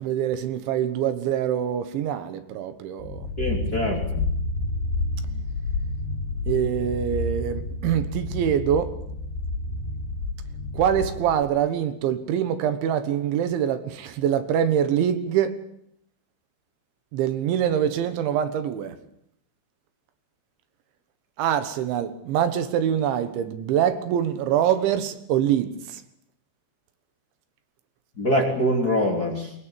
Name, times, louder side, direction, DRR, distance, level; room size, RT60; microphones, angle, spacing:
voice 1, 0.0-3.3 6.5-9.0 10.7-15.6 17.1-19.0 21.4-26.0, right 9 dB, 75° right, 3.6 m, -24 dB
sound 1, 3.0-11.4, left 2 dB, 90° left, 4.7 m, -30 dB
voice 2, 3.4-4.3 28.2-29.5, equal, 20° left, 3.1 m, -24 dB
22.5 x 22.0 x 8.8 m
omnidirectional pair, 5.5 m